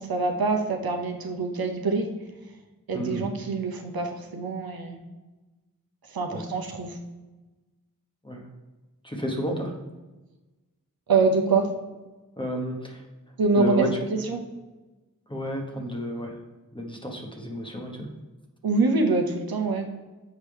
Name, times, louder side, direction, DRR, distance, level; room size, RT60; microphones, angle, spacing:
voice 1, 0.0-2.1 2.9-5.0 6.1-7.0 11.1-11.7 13.4-13.9 14.1-14.4 18.6-19.9, right 4 dB, 85° right, 3 dB, 0.8 m, -25 dB
voice 2, 2.9-3.3 6.3-6.4 8.2-8.4 9.0-9.7 12.4-13.0 13.5-13.9 15.3-16.4 16.7-18.1, equal, 15° left, 2 dB, 1.1 m, -31 dB
6.9 x 4.6 x 3.4 m, 1.2 s
wide cardioid pair, 55°, 35 cm